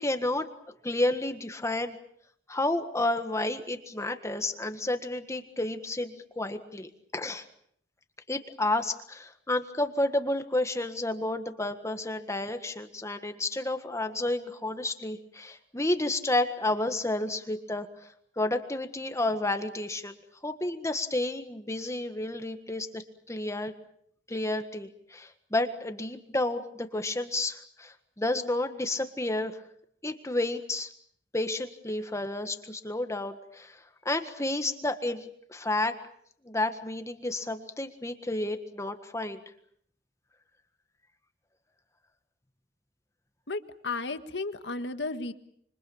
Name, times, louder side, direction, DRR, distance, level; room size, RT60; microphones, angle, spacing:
voice 1, 0.0-2.0 2.5-7.4 8.3-17.9 18.4-23.7 24.3-29.6 30.0-30.9 31.3-36.0 36.4-39.4, left 2 dB, 15° left, 8 dB, 1.6 m, -31 dB
voice 2, 43.5-45.3, left 3 dB, 80° left, 9 dB, 1.8 m, -34 dB
27.0 x 25.0 x 7.2 m, 0.66 s
head